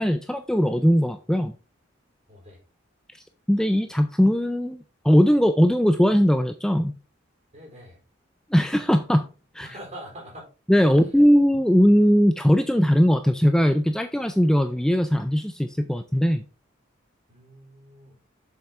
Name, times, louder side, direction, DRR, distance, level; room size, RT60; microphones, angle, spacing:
voice 1, 0.0-1.5 3.5-6.9 8.5-9.3 9.5-9.7 10.7-16.4, equal, 5° left, 8 dB, 0.4 m, -20 dB
voice 2, 2.3-2.6 7.5-8.0 9.6-10.5 10.8-10.9 17.3-18.1, equal, 35° right, -1 dB, 4.2 m, -43 dB
7.1 x 6.6 x 3.6 m, 0.34 s
head